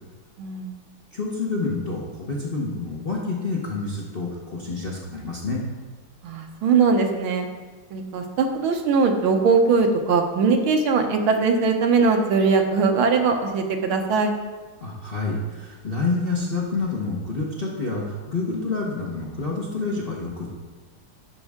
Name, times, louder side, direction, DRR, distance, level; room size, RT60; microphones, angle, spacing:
voice 1, 0.4-0.7 6.2-7.5 7.9-14.3, right 4 dB, 75° right, 4 dB, 1.7 m, -20 dB
voice 2, 1.1-5.6 14.8-20.5, left 3 dB, 40° left, -5 dB, 0.9 m, -28 dB
11.5 x 5.4 x 3.6 m, 1.3 s
omnidirectional pair, 2.4 m